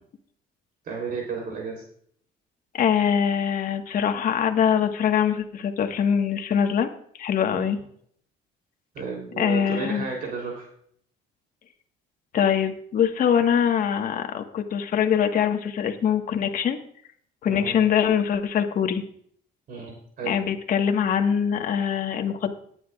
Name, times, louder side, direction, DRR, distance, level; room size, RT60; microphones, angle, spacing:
voice 1, 0.9-1.8 7.5-7.8 8.9-10.7 17.5-17.8 19.7-20.3, right 5 dB, 60° right, 1 dB, 3.3 m, -33 dB
voice 2, 2.7-6.9 7.2-7.8 9.4-10.0 12.3-16.8 17.4-19.0 20.2-22.5, left 8 dB, 55° left, 5 dB, 1.5 m, -23 dB
19.0 x 9.8 x 2.4 m, 0.62 s
cardioid pair, 110°, 17 cm